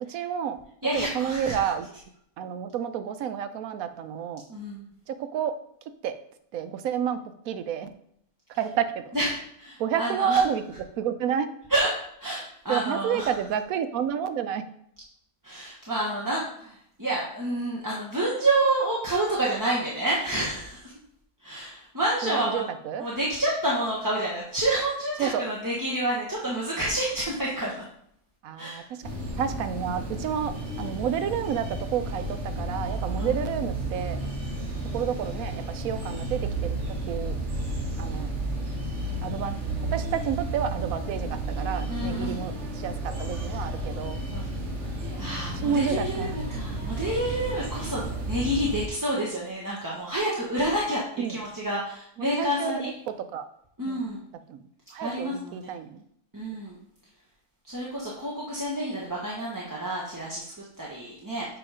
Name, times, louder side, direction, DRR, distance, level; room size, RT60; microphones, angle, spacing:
voice 1, 0.1-0.6 0.9-1.9 2.4-4.4 5.1-5.5 6.0-6.1 6.5-7.2 7.5-7.9 8.6-9.1 9.8-10.6 11.0-11.5 12.7-14.7 22.2-23.1 25.2-25.5 28.4-29.0 29.4-34.2 34.9-36.8 37.1-37.4 38.0-38.3 39.2-39.5 39.9-44.2 45.6-46.4 51.2-51.4 52.2-53.5 53.8-54.0 54.5-54.6 54.9-56.0, right 8 dB, 85° right, 10 dB, 1.1 m, -30 dB
voice 2, 0.8-1.7 4.5-4.9 9.1-9.3 9.6-10.4 11.7-11.9 12.2-13.3 15.4-20.9 21.4-22.6 23.0-27.8 28.6-28.8 33.1-33.4 41.9-42.4 44.3-44.4 45.2-51.0 51.3-52.9 53.8-54.2 55.0-55.7 56.3-56.8 57.6-61.5, right 1 dB, 15° right, -5 dB, 0.9 m, -29 dB
sound 1, 29.0-48.9, right 1 dB, 55° right, 1.7 m, -32 dB
7.8 x 3.1 x 4.9 m, 0.70 s
omnidirectional pair, 1.4 m